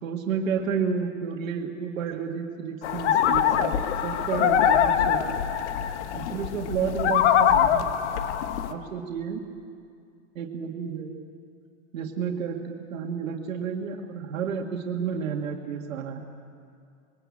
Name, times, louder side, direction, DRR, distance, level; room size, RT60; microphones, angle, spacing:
voice 1, 0.0-3.7 4.0-5.4 6.1-7.8 8.7-9.4 10.4-11.2 11.9-16.2, right 6 dB, 90° right, 2 dB, 2.1 m, -31 dB
sound 1, 2.8-8.7, left 9 dB, 60° left, 1.3 m, -23 dB
21.5 x 17.5 x 8.6 m, 2.4 s
supercardioid pair, 155°, 39 cm